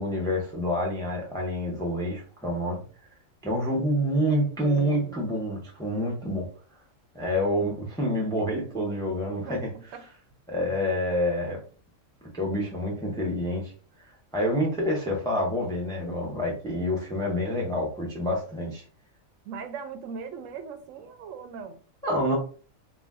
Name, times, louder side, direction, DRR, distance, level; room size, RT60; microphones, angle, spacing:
voice 1, 0.0-2.8 3.4-6.5 7.1-9.7 10.5-11.6 12.3-13.7 14.3-18.8 22.0-22.4, equal, 5° left, 0.5 m, -27 dB
voice 2, 4.6-5.2 9.4-10.0 19.4-21.8, right 6 dB, 75° right, 0.9 m, -39 dB
2.4 x 2.2 x 3.5 m
omnidirectional pair, 1.4 m